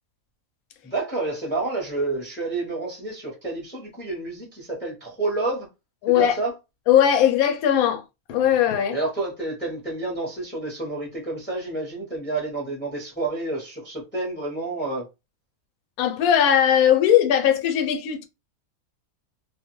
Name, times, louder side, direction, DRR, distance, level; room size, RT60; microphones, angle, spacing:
voice 1, 0.8-5.7 6.1-6.5 8.9-15.0, right 2 dB, 10° left, 0.7 m, -29 dB
voice 2, 6.0-6.4 6.9-8.0 8.3-9.0 16.0-18.3, left 10 dB, 80° left, 1.0 m, -19 dB
2.5 x 2.2 x 2.9 m
omnidirectional pair, 1.5 m